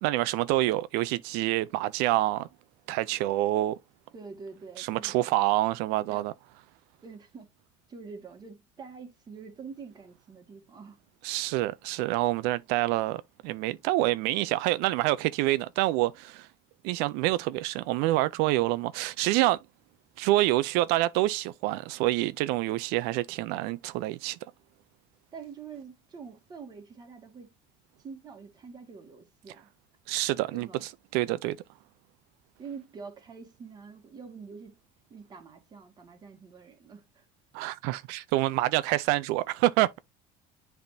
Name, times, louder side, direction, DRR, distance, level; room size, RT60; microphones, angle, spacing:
voice 1, 0.0-2.5 2.9-3.8 4.8-6.3 11.2-16.5 16.8-19.6 20.2-24.4 30.1-30.7 31.1-31.6 37.5-40.0, right 17 dB, 85° right, 0.4 m, -27 dB
voice 2, 4.1-5.3 6.1-6.3 7.0-7.5 7.9-11.0 25.3-27.5 28.0-29.7 30.5-30.8 32.6-34.8 35.1-37.2, right 5 dB, 25° right, 1.6 m, -45 dB
10.5 x 3.5 x 2.6 m
cardioid pair, 165°, 16 cm